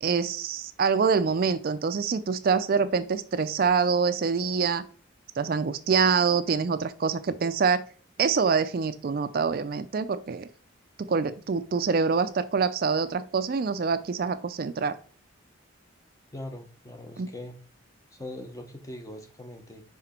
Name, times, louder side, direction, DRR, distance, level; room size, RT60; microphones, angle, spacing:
voice 1, 0.0-4.8 5.4-7.9 8.2-10.5 11.0-15.0 17.2-17.3, right 5 dB, 50° right, 12 dB, 0.4 m, -25 dB
voice 2, 16.3-17.6 18.1-19.8, left 1 dB, 15° left, 6 dB, 0.8 m, -41 dB
5.9 x 3.7 x 4.4 m, 0.41 s
head